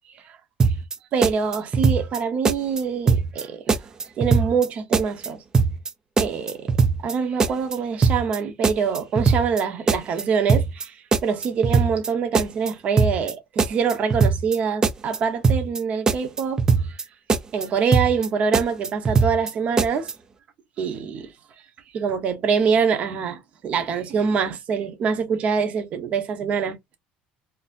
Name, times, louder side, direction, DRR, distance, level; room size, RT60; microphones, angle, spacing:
sound 1, 0.6-1.0 1.2-2.2 2.4-2.8 3.1-3.4 3.7-4.7 4.9-5.3 5.5-5.9 6.2-7.1 7.4-7.8 8.0-8.4 8.6-9.6 9.9-10.2 10.5-10.8 11.1-12.1 12.3-12.7 13.0-13.3 13.6-14.6 14.8-15.2 15.4-15.8 16.1-17.0 17.3-17.7 17.9-18.3 18.5-19.5 19.8-20.1, right 4 dB, 20° right, 0.4 m, -20 dB
voice 1, 1.1-3.8 4.2-5.4 6.2-6.7 7.0-11.0 11.2-16.6 17.5-20.1 20.8-21.3 21.9-26.7, right 6 dB, 40° right, 0.8 m, -24 dB
3.9 x 2.6 x 2.4 m
cardioid pair, 150°, 3 cm